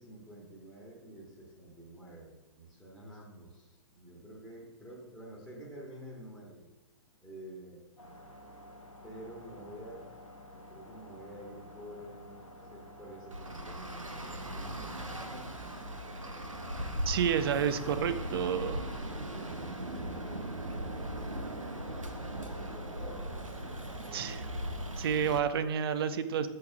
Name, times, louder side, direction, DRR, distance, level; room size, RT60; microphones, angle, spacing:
voice 1, 0.0-6.7 7.2-7.8 9.0-10.1 10.5-15.9 19.0-20.5 21.1-21.5 22.2-23.4 23.7-24.4, right 1 dB, ahead, -5 dB, 1.5 m, -49 dB
sound 1, 8.0-25.0, equal, 85° left, 1.0 m, -51 dB
Traffic noise roadway noise, 13.3-25.4, right 1 dB, 90° right, 0.7 m, -39 dB
voice 2, 17.1-18.9 24.1-24.4 25.0-26.5, right 8 dB, 50° right, 11 dB, 0.5 m, -30 dB
6.9 x 6.5 x 2.4 m, 0.97 s
figure-of-eight pair, 110°, 16 cm